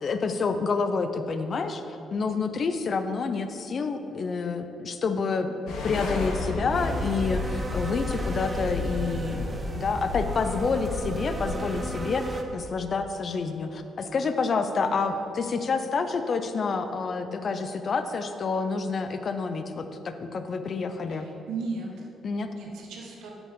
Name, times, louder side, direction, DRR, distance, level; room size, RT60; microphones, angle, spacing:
voice 1, 0.0-5.5 5.8-21.3 22.2-22.5, left 4 dB, 45° left, 8 dB, 0.5 m, -28 dB
sound 1, 5.7-11.8, left 2 dB, 80° left, 1.2 m, -32 dB
sound 2, 6.7-12.4, right 2 dB, 25° right, 0.8 m, -36 dB
voice 2, 14.8-15.3 21.1-22.1 22.5-23.3, right 4 dB, 85° right, -1 dB, 1.1 m, -36 dB
8.2 x 6.9 x 3.7 m, 2.9 s
cardioid pair, 90°, 0 cm